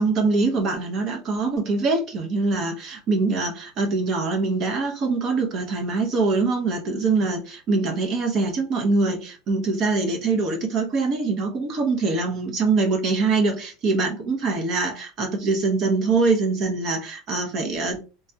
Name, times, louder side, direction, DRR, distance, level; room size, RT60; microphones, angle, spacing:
voice 1, 0.0-18.0, right 3 dB, 35° right, 0.7 m, -23 dB
3.3 x 2.2 x 2.7 m
supercardioid pair, 160°, 0 cm